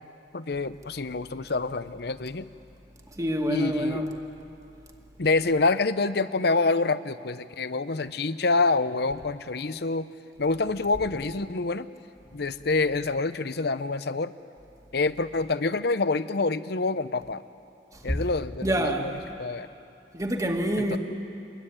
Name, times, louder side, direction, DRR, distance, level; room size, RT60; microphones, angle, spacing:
voice 1, 0.3-2.5 3.5-4.0 5.2-10.1 10.4-11.9 12.3-14.3 14.9-17.4 18.0-19.1 19.4-19.7 20.9-21.0, left 3 dB, 65° left, 0.8 m, -26 dB
voice 2, 3.2-4.1 17.9-18.2 18.6-19.1 20.1-21.0, right 1 dB, 20° right, 2.1 m, -27 dB
26.0 x 22.0 x 9.9 m
head